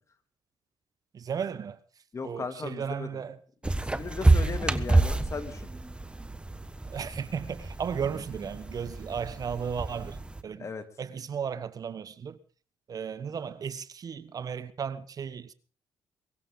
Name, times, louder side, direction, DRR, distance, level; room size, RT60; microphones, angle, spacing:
voice 1, 1.1-1.8 2.2-3.4 6.9-10.7 11.0-12.4 12.9-15.5, right 7 dB, 50° right, 1.2 m, -35 dB
voice 2, 2.1-3.2 3.7-5.7 10.6-10.8, left 4 dB, 35° left, 2.6 m, -37 dB
sound 1, 3.6-10.4, right 2 dB, 10° right, 1.3 m, -28 dB
23.5 x 15.0 x 3.9 m
cardioid pair, 85°, 8 cm